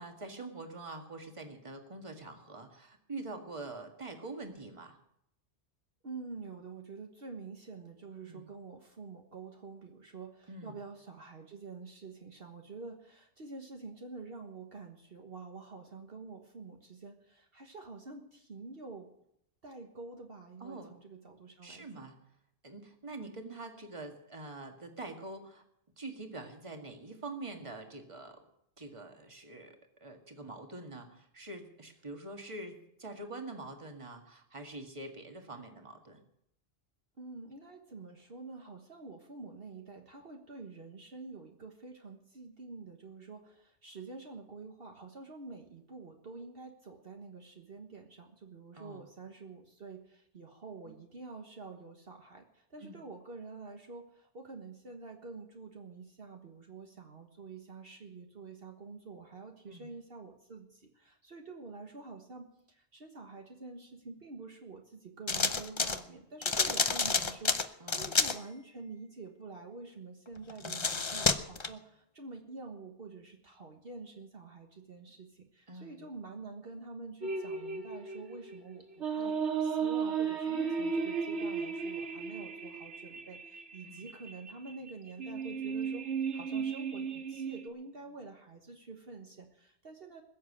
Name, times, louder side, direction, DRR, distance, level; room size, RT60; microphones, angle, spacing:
voice 1, 0.0-5.0 8.2-8.5 10.5-10.8 20.6-20.9 21.6-22.2 22.6-25.6 26.0-28.4 28.8-36.2 48.7-49.0 50.9-51.0 52.8-53.0 59.7-59.9 67.8-68.2 75.7-76.0 83.8-84.0, right 2 dB, 25° right, 4 dB, 1.9 m, -45 dB
voice 2, 6.0-19.1 19.6-22.1 37.2-86.1 86.3-90.2, right 4 dB, 55° right, 3 dB, 1.6 m, -47 dB
sound 1, 65.3-66.0 66.4-68.4 70.5-71.7, left 4 dB, 30° left, 0.7 m, -29 dB
sound 2, 77.2-87.7, right 6 dB, 90° right, 2.0 m, -35 dB
20.5 x 7.4 x 8.5 m, 0.77 s
omnidirectional pair, 1.2 m